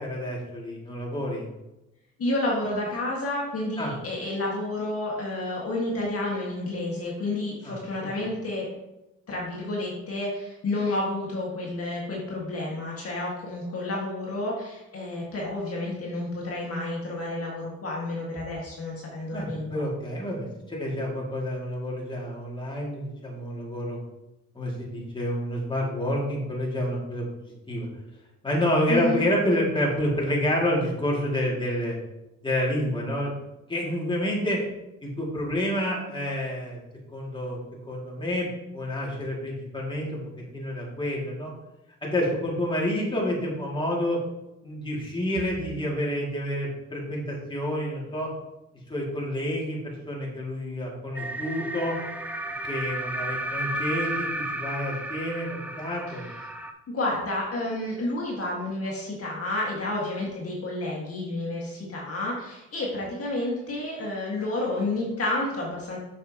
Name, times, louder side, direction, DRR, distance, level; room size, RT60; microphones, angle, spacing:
voice 1, 0.0-1.5 3.8-3.9 7.6-7.7 19.3-24.0 24.5-27.2 27.7-27.9 28.4-31.9 32.4-33.3 33.7-34.6 35.0-36.8 37.1-37.6 37.9-38.5 38.7-40.2 40.5-41.5 42.0-44.2 44.6-48.3 48.9-52.0 52.6-56.3, left 1 dB, 15° left, -4 dB, 2.3 m, -28 dB
voice 2, 2.2-8.7 9.3-19.8 28.9-29.2 56.9-66.0, left 2 dB, 50° left, -3 dB, 1.8 m, -30 dB
sound 1, 51.1-56.7, right 1 dB, 5° right, 0.5 m, -33 dB
6.5 x 6.5 x 2.9 m, 0.94 s
cardioid pair, 90°, 30 cm